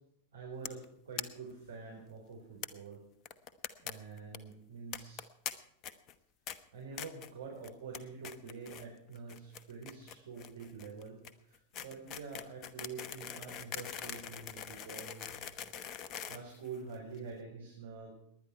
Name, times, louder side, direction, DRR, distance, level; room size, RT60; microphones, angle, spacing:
voice 1, 0.3-3.0 3.8-5.2 6.7-15.5 16.3-18.1, right 5 dB, 65° right, -1 dB, 4.2 m, -47 dB
sound 1, 0.6-0.8 1.2-1.3 1.5-1.6 1.8-1.9 2.6-2.7 3.2-3.9 4.2-4.4 4.9-5.5 5.8-6.1 6.5-6.6 7.0-7.3 7.6-8.0 8.2-8.8 9.1-17.2, left 9 dB, 35° left, 1.0 m, -43 dB
19.5 x 10.5 x 4.5 m, 0.77 s
figure-of-eight pair, 90°, 0 cm